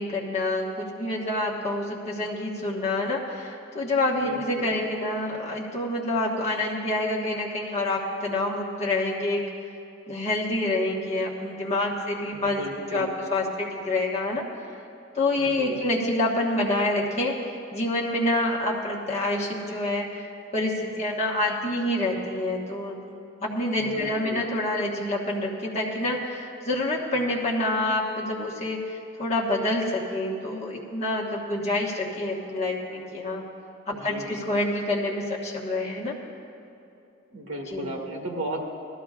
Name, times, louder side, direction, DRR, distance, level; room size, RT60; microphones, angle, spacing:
voice 1, 0.0-9.5 10.1-12.6 12.9-14.4 15.1-17.3 17.7-20.3 20.5-23.0 23.4-33.4 33.9-36.2 37.7-37.9, left 2 dB, 30° left, -3 dB, 1.4 m, -27 dB
voice 2, 4.1-4.7 12.3-13.1 15.4-15.8 23.8-24.5 33.9-34.4 37.3-38.6, right 1 dB, 75° right, 0 dB, 1.7 m, -35 dB
19.5 x 13.5 x 2.5 m, 2.8 s
head